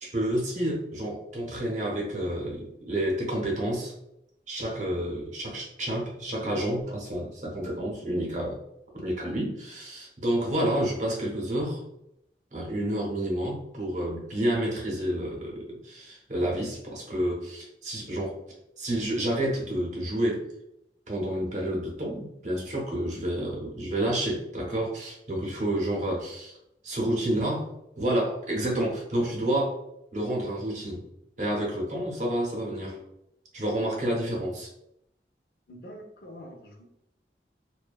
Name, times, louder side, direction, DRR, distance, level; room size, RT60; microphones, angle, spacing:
voice 1, 0.0-3.9 4.5-8.6 8.9-11.8 12.5-18.3 18.8-20.5 21.1-26.6 26.8-27.7 28.0-29.8 30.1-31.0 31.4-33.0 33.5-34.7, right 1 dB, 45° right, -2 dB, 0.7 m, -29 dB
voice 2, 35.7-36.9, equal, 55° left, 2 dB, 0.4 m, -45 dB
2.5 x 2.2 x 2.3 m, 0.81 s
head